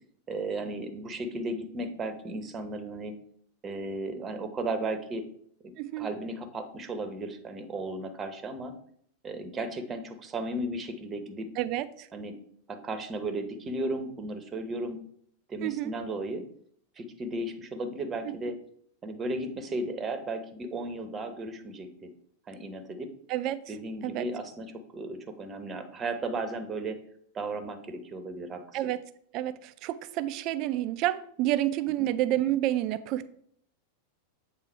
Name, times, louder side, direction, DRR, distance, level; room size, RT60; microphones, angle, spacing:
voice 1, 0.3-3.1 3.6-5.2 5.6-8.7 9.2-11.5 12.1-12.3 12.7-15.0 15.5-16.4 17.0-18.6 19.0-22.1 22.5-23.1 23.7-27.0 27.3-28.6 32.0-32.1, right 2 dB, 20° right, 8 dB, 0.9 m, -35 dB
voice 2, 11.6-12.1 15.6-15.9 18.2-18.3 23.3-23.6 24.0-24.3 28.7-29.0 29.3-33.3, right 14 dB, 40° right, 13 dB, 0.4 m, -29 dB
7.5 x 3.7 x 4.4 m, 0.64 s
figure-of-eight pair, 90°, 0 cm